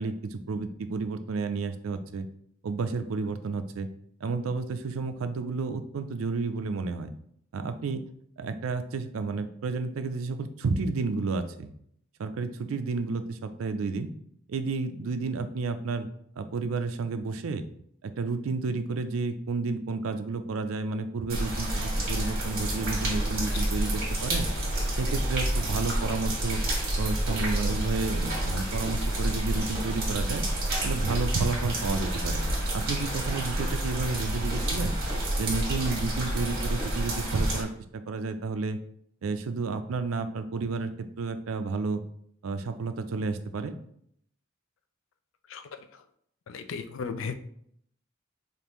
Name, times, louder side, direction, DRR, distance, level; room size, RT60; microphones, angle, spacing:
voice 1, 0.0-2.3 2.6-3.9 4.2-7.1 7.5-8.0 8.4-11.7 12.2-14.1 14.5-16.1 16.4-17.6 18.0-24.5 24.9-26.6 27.0-30.4 30.8-32.4 32.7-35.0 35.4-37.7 38.1-38.8 39.2-40.9 41.2-42.0 42.4-43.8, right 4 dB, 85° right, 9 dB, 0.4 m, -31 dB
sound 1, 21.3-37.6, right 1 dB, 50° right, 1.6 m, -29 dB
voice 2, 46.5-47.4, left 5 dB, 65° left, 9 dB, 0.4 m, -35 dB
5.1 x 2.6 x 3.0 m, 0.68 s
head